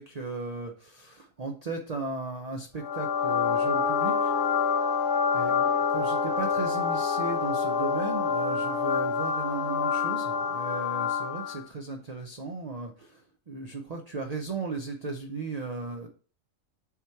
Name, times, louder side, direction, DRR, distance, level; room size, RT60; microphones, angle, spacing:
voice 1, 0.0-4.3 5.3-16.1, right 3 dB, 40° right, 3 dB, 0.5 m, -36 dB
sound 1, 2.8-11.6, left 6 dB, 65° left, 0.9 m, -27 dB
7.2 x 3.0 x 4.4 m, 0.40 s
omnidirectional pair, 1.5 m